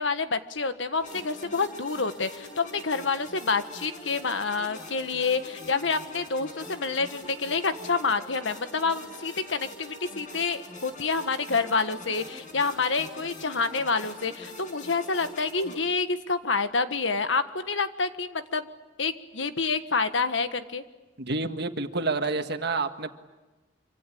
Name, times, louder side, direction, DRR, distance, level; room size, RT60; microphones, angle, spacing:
voice 1, 0.0-18.7 19.0-20.8, left 4 dB, 85° left, 9 dB, 1.6 m, -28 dB
sound 1, 1.0-15.7, left 1 dB, 45° left, 7.7 m, -44 dB
voice 2, 21.2-23.1, right 3 dB, 60° right, 7 dB, 1.7 m, -28 dB
26.0 x 25.5 x 8.7 m, 1.1 s
head